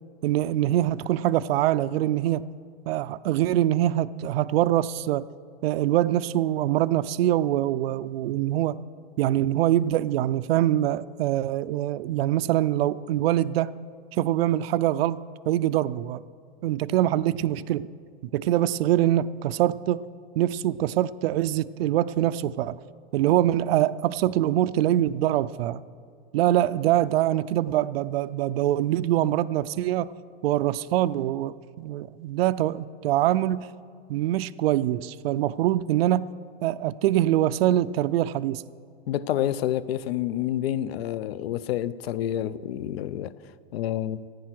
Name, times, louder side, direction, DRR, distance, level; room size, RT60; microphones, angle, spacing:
voice 1, 0.2-2.4 2.9-5.3 5.6-8.8 9.2-13.7 14.1-16.2 16.6-17.9 18.3-20.0 20.4-22.8 23.1-25.8 26.3-30.1 30.4-33.7 34.1-36.3 36.6-38.6, right 13 dB, 75° right, 0.5 m, -24 dB
voice 2, 39.1-43.3 43.7-44.2, left 11 dB, 80° left, 0.6 m, -28 dB
15.5 x 9.3 x 6.0 m
supercardioid pair, 165°, 30 cm